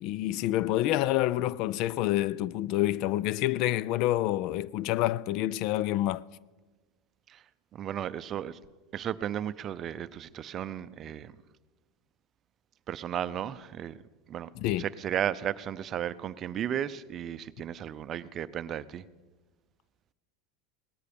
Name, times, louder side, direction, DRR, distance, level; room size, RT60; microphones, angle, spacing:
voice 1, 0.0-6.2 14.5-14.9, left 14 dB, 55° left, 0.4 m, -28 dB
voice 2, 7.7-8.6 8.9-11.3 12.9-13.9 14.3-14.5 14.8-19.0, right 10 dB, 35° right, 0.6 m, -34 dB
18.0 x 13.0 x 5.2 m
supercardioid pair, 125°, 0 cm